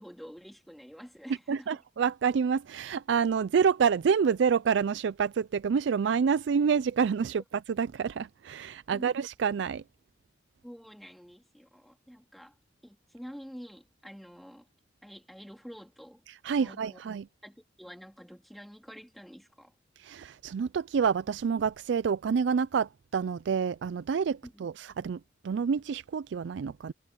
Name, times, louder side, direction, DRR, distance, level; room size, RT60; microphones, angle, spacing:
voice 1, 0.0-1.7 8.9-9.2 10.6-12.5 12.8-14.7 15.0-16.2 16.6-17.0 17.4-19.7 24.4-24.6, equal, ahead, 3.5 m, -48 dB
voice 2, 1.5-9.8 16.3-17.3 20.0-25.2 25.4-26.9, right 6 dB, 80° right, 0.4 m, -28 dB
head